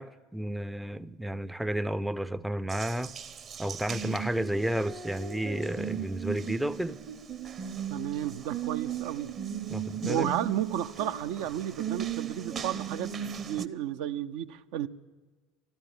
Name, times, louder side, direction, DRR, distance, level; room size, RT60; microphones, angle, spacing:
voice 1, 0.0-3.2 3.6-7.0 9.7-10.3, right 1 dB, 5° right, 0.5 m, -32 dB
Water tap faucet, 2.7-13.7, right 8 dB, 40° right, 0.8 m, -37 dB
voice 2, 7.9-9.3 10.0-14.9, right 11 dB, 65° right, 0.5 m, -33 dB
13.0 x 12.5 x 8.0 m
hypercardioid pair, 70°, 0 cm